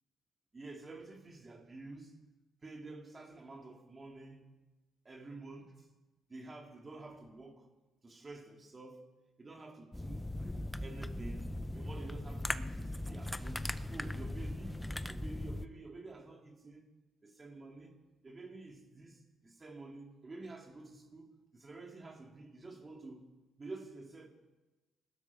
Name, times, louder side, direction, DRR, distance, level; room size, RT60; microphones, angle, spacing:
voice 1, 0.5-2.2 2.6-4.4 5.0-5.9 6.3-7.7 8.0-9.1 9.4-10.3 10.8-16.9 17.2-18.0 18.2-23.3 23.6-24.3, right 2 dB, 30° right, 2.5 m, -50 dB
sound 1, 9.9-15.7, left 1 dB, 10° left, 0.8 m, -39 dB
19.0 x 13.0 x 5.4 m
cardioid pair, 90°, 0 cm